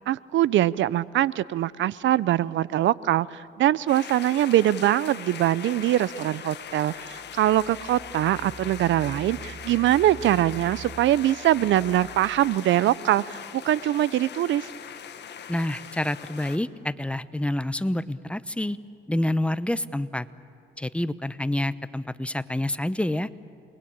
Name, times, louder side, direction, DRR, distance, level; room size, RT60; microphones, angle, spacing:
voice 1, 0.1-13.4 13.6-14.7, right 13 dB, 75° right, 20 dB, 0.6 m, -23 dB
sound 1, 3.9-16.6, left 8 dB, 60° left, 1.5 m, -41 dB
Engine, 6.8-12.7, right 5 dB, 35° right, 0.7 m, -45 dB
voice 2, 15.5-18.8 19.1-20.3 20.8-23.3, left 1 dB, 5° left, 14 dB, 0.8 m, -28 dB
29.0 x 21.5 x 8.8 m, 2.6 s
cardioid pair, 90°, 20 cm